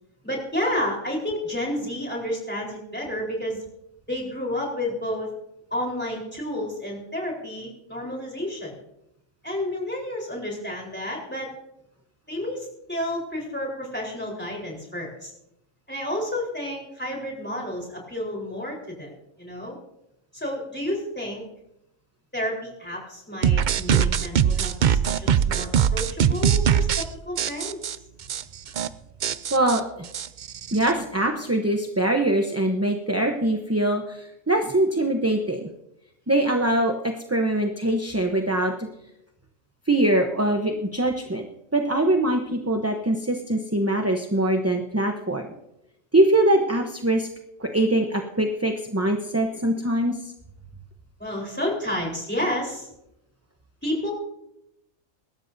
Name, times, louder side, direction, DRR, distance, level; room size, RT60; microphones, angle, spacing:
voice 1, 0.2-3.6 4.1-5.3 5.7-8.8 9.4-11.5 12.3-15.3 15.9-19.1 19.4-19.8 20.3-21.4 22.3-27.8 51.2-52.9 53.8-54.1, left 1 dB, 5° left, -2 dB, 4.1 m, -30 dB
sound 1, 23.4-27.1 27.4-28.0 28.3-28.4 28.7-28.9 29.2-30.9, right 8 dB, 65° right, 0.4 m, -22 dB
voice 2, 29.5-30.1 30.7-35.6 36.3-38.9 39.9-41.5 41.7-45.5 46.1-47.3 47.6-50.3, right 1 dB, 15° right, 3 dB, 0.7 m, -23 dB
23.5 x 13.0 x 2.7 m, 0.85 s
omnidirectional pair, 1.4 m